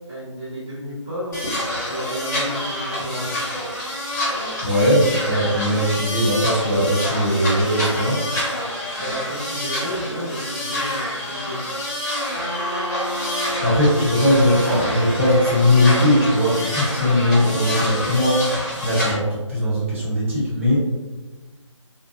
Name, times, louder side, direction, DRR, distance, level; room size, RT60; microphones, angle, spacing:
voice 1, 0.1-1.4 1.7-3.4 9.0-11.6, equal, 10° left, -15 dB, 0.3 m, -32 dB
sound 1, 1.3-19.1, left 1 dB, 35° left, 1.0 m, -27 dB
voice 2, 4.6-8.2 13.6-18.4 18.8-20.8, left 1 dB, 25° right, -9 dB, 1.0 m, -19 dB
Trumpet, 12.3-16.8, equal, 70° right, 0.8 m, -31 dB
2.8 x 2.2 x 2.7 m, 1.2 s
figure-of-eight pair, 155°, 16 cm